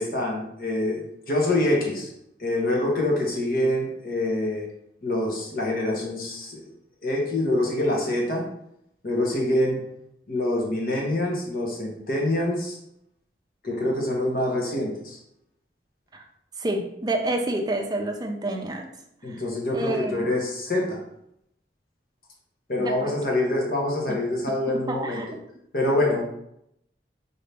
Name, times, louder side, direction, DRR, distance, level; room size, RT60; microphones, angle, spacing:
voice 1, 0.0-2.1 2.4-4.6 5.0-6.6 7.0-8.5 9.0-9.8 10.3-12.8 13.6-15.2 19.2-21.0 22.7-25.2 25.7-26.2, left 1 dB, 55° left, -1 dB, 1.0 m, -25 dB
voice 2, 16.6-18.9 19.3-19.4 19.7-20.2 22.8-23.2 24.1-24.2 24.7-25.3 25.8-25.9, right 1 dB, 25° right, 2 dB, 0.5 m, -29 dB
4.1 x 2.7 x 3.3 m, 0.77 s
head